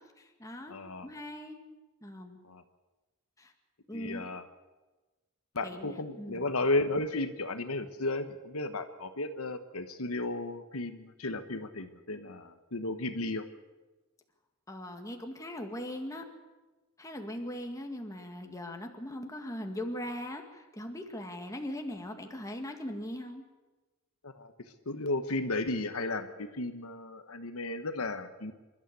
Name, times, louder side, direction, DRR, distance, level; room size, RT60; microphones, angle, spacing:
voice 1, 0.2-0.7 1.0-1.6 2.0-2.4 3.4-3.5 3.9-4.3 5.6-6.5 14.7-16.3 17.0-23.4, left 1 dB, 15° left, 3 dB, 2.0 m, -40 dB
voice 2, 0.7-1.1 2.4-2.6 3.9-4.4 5.5-13.4 24.2-24.5 24.9-28.5, left 2 dB, 75° left, 8 dB, 1.2 m, -34 dB
26.5 x 12.5 x 8.3 m, 1.2 s
head